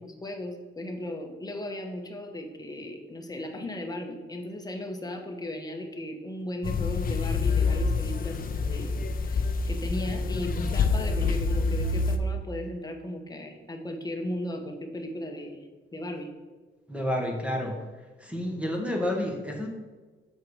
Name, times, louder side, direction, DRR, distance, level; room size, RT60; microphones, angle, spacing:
voice 1, 0.2-8.9 9.2-15.6 15.9-16.3, left 1 dB, 20° left, 3 dB, 1.1 m, -36 dB
sound 1, 6.6-12.2, left 4 dB, 45° left, 0.6 m, -27 dB
voice 2, 16.9-17.8 18.2-19.7, left 1 dB, 5° right, 1 dB, 1.4 m, -30 dB
6.5 x 4.6 x 4.8 m, 1.3 s
cardioid pair, 90°, 20 cm